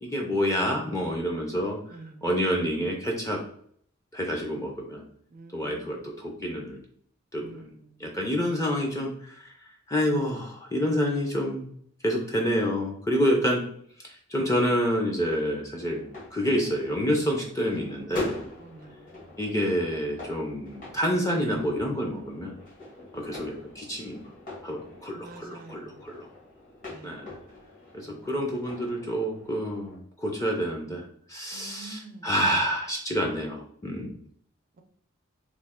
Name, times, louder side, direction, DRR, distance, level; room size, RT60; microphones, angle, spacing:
voice 1, 0.0-1.8 2.2-3.4 4.1-5.0 5.5-6.8 7.3-7.7 8.0-9.5 9.9-11.7 12.0-13.6 14.0-16.1 16.3-18.4 19.4-22.5 23.1-24.2 24.6-26.3 27.0-27.3 27.9-31.0 31.3-34.1, equal, 15° left, 1 dB, 0.5 m, -28 dB
voice 2, 1.9-2.3 5.3-5.9 7.4-7.8 18.6-19.2 25.1-26.1 26.9-27.3 28.0-28.3 31.5-32.3, right 2 dB, 40° right, 7 dB, 0.4 m, -47 dB
sound 1, 15.8-30.0, left 2 dB, 40° left, 1.4 m, -43 dB
3.2 x 2.6 x 3.6 m, 0.63 s
head